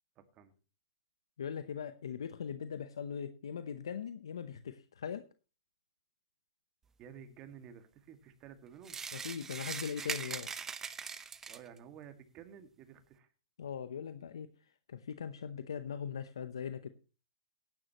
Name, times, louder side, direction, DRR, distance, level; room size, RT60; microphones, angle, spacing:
voice 1, 0.2-0.5 7.0-9.0 11.5-13.3, right 8 dB, 35° right, 7 dB, 2.0 m, -52 dB
voice 2, 1.4-5.3 9.1-10.5 13.6-14.5 14.9-16.9, left 7 dB, 80° left, 11 dB, 0.8 m, -40 dB
sound 1, 8.8-11.8, right 6 dB, 15° right, 0.8 m, -41 dB
16.0 x 11.0 x 3.0 m, 0.34 s
hypercardioid pair, 125°, 3 cm